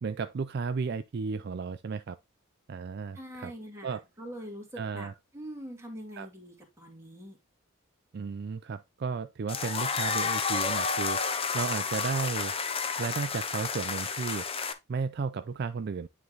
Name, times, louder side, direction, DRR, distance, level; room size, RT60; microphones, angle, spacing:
voice 1, 0.0-2.2 2.7-3.5 3.8-4.0 4.8-5.1 6.2-6.3 8.1-11.2 11.5-12.6 13.0-14.5 14.9-16.1, right 5 dB, 50° right, 0.3 m, -33 dB
voice 2, 3.1-7.4, equal, 15° right, 2.0 m, -44 dB
sound 1, 9.5-14.7, left 5 dB, 25° left, 0.6 m, -31 dB
9.5 x 3.2 x 3.8 m
head